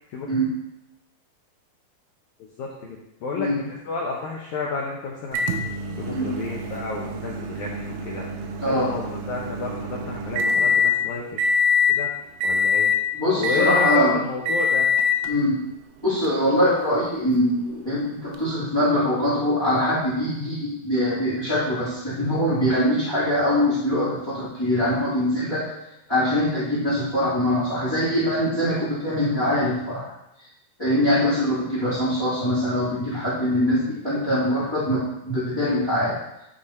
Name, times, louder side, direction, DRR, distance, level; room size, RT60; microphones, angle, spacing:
voice 1, 2.4-5.5 6.0-8.3 8.7-9.0 9.3-11.5 11.9-12.1 12.4-12.9 13.4-14.9, left 3 dB, 90° left, -3 dB, 1.6 m, -31 dB
Microwave oven, 5.3-11.0 11.4-12.0 12.4-13.0 13.4-14.1 14.5-15.3 16.2-16.3 18.3-18.4, left 4 dB, 80° right, 2.2 m, -24 dB
voice 2, 8.6-8.9 13.1-14.2 15.3-15.6 16.0-25.7 26.1-30.1 30.8-36.1, equal, 15° left, -10 dB, 1.0 m, -23 dB
10.5 x 3.9 x 4.3 m, 0.87 s
omnidirectional pair, 4.6 m